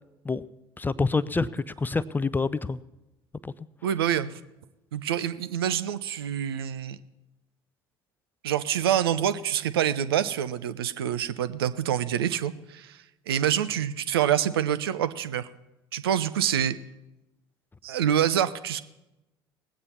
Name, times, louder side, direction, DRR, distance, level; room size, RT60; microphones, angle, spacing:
voice 1, 0.8-2.8 3.4-3.5, left 4 dB, 15° left, 18 dB, 0.4 m, -27 dB
voice 2, 3.8-4.4 4.9-7.0 8.4-13.0 13.3-15.5 15.9-16.8 17.8-18.8, right 10 dB, 75° right, 13 dB, 0.5 m, -26 dB
19.5 x 8.5 x 4.3 m, 0.98 s
figure-of-eight pair, 55°, 13 cm